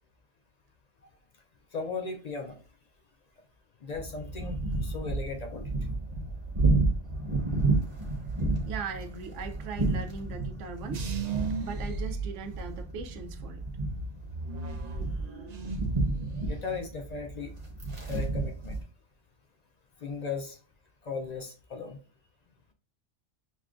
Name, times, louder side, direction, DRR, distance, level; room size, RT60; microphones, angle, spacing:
voice 1, 1.7-2.6 3.8-5.7 16.4-17.5 18.1-18.8 20.0-20.6 21.0-22.0, left 4 dB, 60° left, 0.4 m, -37 dB
sound 1, 3.9-18.8, right 2 dB, 30° right, 0.8 m, -31 dB
voice 2, 8.7-11.1 11.6-13.6, right 5 dB, 90° right, 0.9 m, -39 dB
sound 2, 10.9-13.0 13.4-16.0 16.3-16.9, right 4 dB, 55° right, 0.4 m, -37 dB
6.3 x 2.2 x 2.4 m
omnidirectional pair, 1.2 m